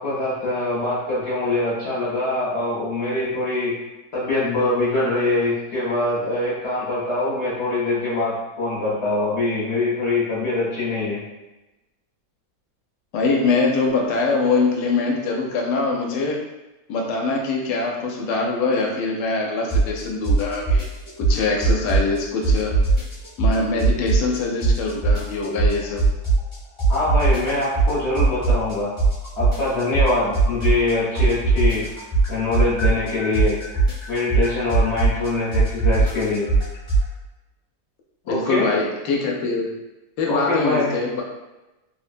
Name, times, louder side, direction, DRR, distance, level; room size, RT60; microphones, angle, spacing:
voice 1, 0.0-3.8 4.1-11.2 26.9-28.9 29.4-31.9 32.3-33.5 34.1-36.5 38.2-38.7 40.2-41.0, left 2 dB, 50° left, -8 dB, 0.9 m, -23 dB
voice 2, 13.1-16.4 16.9-20.9 21.2-22.7 23.4-26.0 38.3-39.7 40.2-41.2, left 3 dB, 75° left, 0 dB, 1.1 m, -23 dB
sound 1, 19.7-20.0 20.2-22.2 22.4-24.4 24.6-26.5 26.8-30.9 31.1-37.1, right 3 dB, 30° left, 0.6 m, -19 dB
3.1 x 2.1 x 2.5 m, 1.0 s
omnidirectional pair, 1.8 m